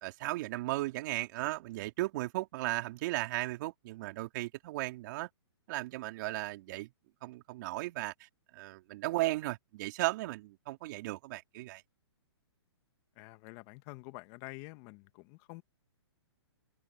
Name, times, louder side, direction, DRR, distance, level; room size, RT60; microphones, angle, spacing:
voice 1, 0.0-5.3 5.7-6.9 7.2-8.3 8.5-11.8, right 19 dB, 40° right, 3.7 m, -36 dB
voice 2, 13.2-15.6, left 24 dB, 30° left, 1.5 m, -48 dB
hypercardioid pair, 145°, 15 cm